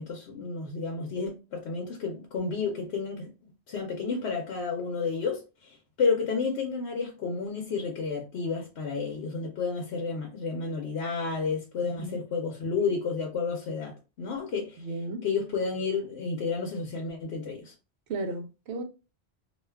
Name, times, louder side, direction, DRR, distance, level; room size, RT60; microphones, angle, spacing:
voice 1, 0.0-3.3 3.7-14.8 15.2-17.7, left 5 dB, 75° left, 0.9 m, -31 dB
voice 2, 11.8-12.2 14.8-15.3 18.1-18.8, right 2 dB, 80° right, 0.9 m, -34 dB
2.5 x 2.2 x 3.3 m
omnidirectional pair, 1.1 m